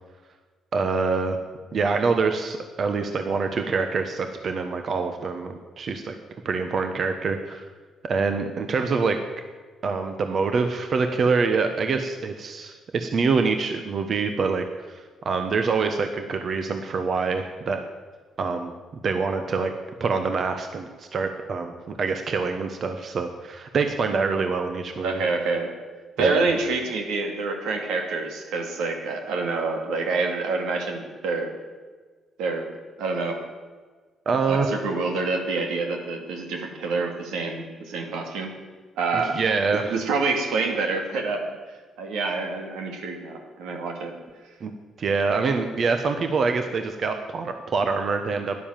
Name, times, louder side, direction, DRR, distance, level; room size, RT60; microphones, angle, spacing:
voice 1, 0.7-1.4 1.7-6.1 6.4-7.6 8.1-9.2 9.8-17.8 18.4-18.7 19.0-19.7 20.0-25.2 26.2-26.5 34.2-34.7 39.1-40.0 44.6-44.7 45.0-48.6, right 4 dB, 50° right, 6 dB, 1.1 m, -25 dB
voice 2, 25.0-25.7 26.2-31.5 32.4-32.7 33.0-33.4 34.5-38.5 39.0-39.4 39.7-41.5 42.0-44.2, right 3 dB, 90° right, 3 dB, 2.3 m, -27 dB
12.5 x 11.0 x 7.5 m, 1.4 s
cardioid pair, 90°, 0 cm